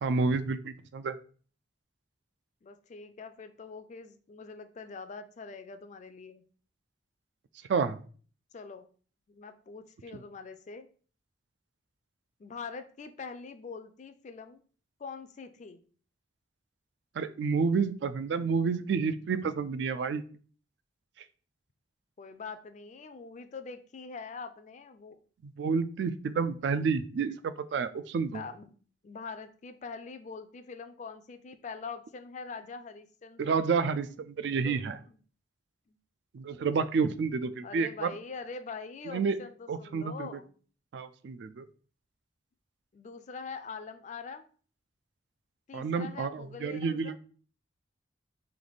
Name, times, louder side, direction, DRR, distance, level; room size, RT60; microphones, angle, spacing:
voice 1, 0.0-1.2 7.7-8.0 17.2-20.2 25.4-28.4 33.4-35.0 36.3-38.1 39.0-39.4 39.7-40.3 40.9-41.7 45.7-47.2, right 5 dB, 65° right, 12 dB, 0.3 m, -29 dB
voice 2, 2.6-6.4 8.5-8.8 9.3-10.9 12.4-14.6 15.0-15.8 22.2-25.2 28.3-28.7 29.0-33.6 34.6-35.2 35.9-36.0 37.6-40.5 42.9-44.5 45.7-47.2, left 4 dB, 40° left, 9 dB, 0.4 m, -43 dB
3.3 x 2.9 x 4.0 m, 0.42 s
head